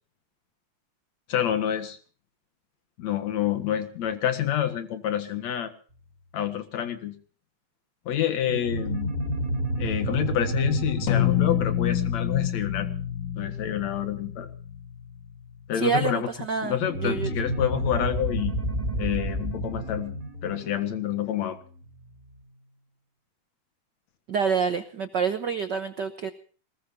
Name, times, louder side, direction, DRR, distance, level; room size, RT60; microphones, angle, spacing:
voice 1, 1.3-2.0 3.0-5.7 6.3-7.2 8.1-9.1 9.8-12.9 13.4-14.5 15.7-16.3 16.6-18.6 19.0-20.1 20.4-21.6, left 10 dB, 60° left, 8 dB, 2.8 m, -28 dB
sound 1, 8.5-13.4 16.8-21.7, right 1 dB, 25° right, 5.5 m, -31 dB
sound 2, 11.1-15.7, left 11 dB, 75° left, 3.0 m, -27 dB
voice 2, 15.7-17.3 24.3-26.3, right 6 dB, 90° right, 8 dB, 0.9 m, -27 dB
23.0 x 20.5 x 2.8 m, 0.41 s
omnidirectional pair, 3.7 m